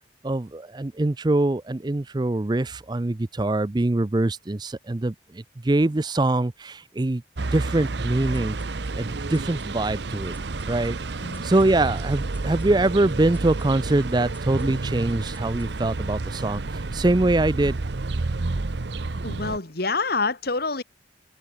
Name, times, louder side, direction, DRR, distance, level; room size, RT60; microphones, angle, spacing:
voice 1, 0.2-7.2 7.5-8.6 9.0-10.3 10.7-11.0 11.4-16.6 16.9-17.8, right 2 dB, 20° right, 0.5 m, -23 dB
sound 1, 7.4-19.6, right 3 dB, 60° right, 0.8 m, -30 dB
sound 2, 8.3-16.1, left 3 dB, 10° left, 5.7 m, -59 dB
voice 2, 19.2-20.8, left 3 dB, 50° left, 1.9 m, -27 dB
head